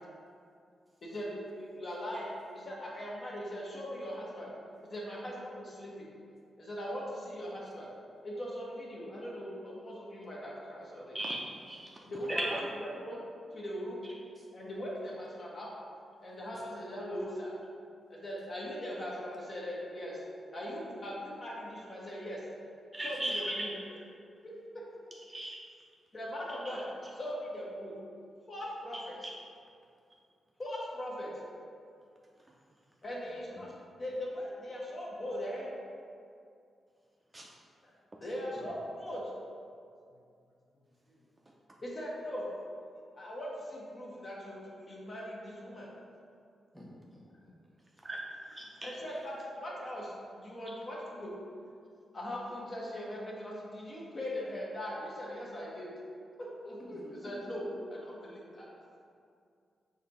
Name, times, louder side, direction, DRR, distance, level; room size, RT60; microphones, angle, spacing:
voice 1, 1.0-4.5 4.8-6.1 6.6-7.9 8.2-11.2 12.0-12.4 12.8-13.2 13.5-14.0 14.5-15.7 16.2-17.6 18.1-20.2 20.5-22.4 23.0-23.7 24.4-24.8 26.1-26.8 27.1-27.9 28.5-29.2 30.6-31.3 33.0-33.7 34.0-35.7 37.8-37.9 38.2-39.3 41.1-41.2 41.8-42.5 43.1-44.6 44.9-45.9 48.8-51.3 52.1-55.9 56.4-58.7, equal, 45° left, -4 dB, 1.0 m, -40 dB
voice 2, 11.1-11.9 12.3-12.6 22.9-23.7 25.3-25.6 29.2-29.3 37.3-37.5 48.0-48.2 48.5-48.9, right 1 dB, 25° right, -2 dB, 0.4 m, -36 dB
voice 3, 46.7-47.5 56.9-57.4, equal, 5° left, -6 dB, 1.2 m, -51 dB
4.0 x 2.7 x 4.1 m, 2.4 s
cardioid pair, 75°, 0 cm